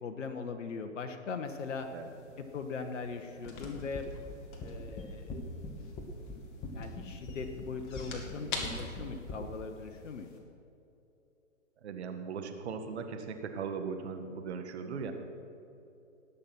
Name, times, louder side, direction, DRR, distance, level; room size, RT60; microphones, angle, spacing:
voice 1, 0.0-1.9 2.4-4.0 4.6-5.5 6.7-8.5 8.7-10.5, left 5 dB, 70° left, 6 dB, 1.2 m, -40 dB
hollow wood door open then close, 1.4-10.4, left 3 dB, 40° left, 2.4 m, -47 dB
sound 1, 3.4-9.5, left 2 dB, 15° left, 1.3 m, -42 dB
voice 2, 11.8-15.1, right 5 dB, 55° right, 6 dB, 1.7 m, -38 dB
18.5 x 7.1 x 6.0 m, 2.9 s
hypercardioid pair, 135°, 39 cm